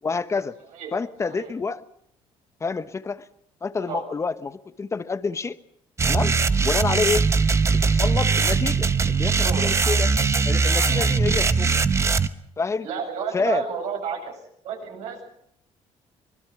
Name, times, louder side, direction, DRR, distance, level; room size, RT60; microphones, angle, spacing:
voice 1, 0.0-0.6 0.9-1.8 2.6-3.3 3.6-5.6 6.1-6.4 6.6-7.3 7.7-10.1 10.4-11.7 12.6-12.9 13.3-13.7, left 4 dB, 25° left, 12 dB, 1.1 m, -28 dB
sound 1, 6.0-12.3, right 4 dB, 25° right, 1.0 m, -21 dB
voice 2, 9.4-9.7 10.9-11.1 12.8-14.4 14.6-15.2, right 6 dB, 75° right, 2 dB, 7.8 m, -31 dB
25.5 x 20.5 x 6.2 m, 0.70 s
cardioid pair, 115°, 12 cm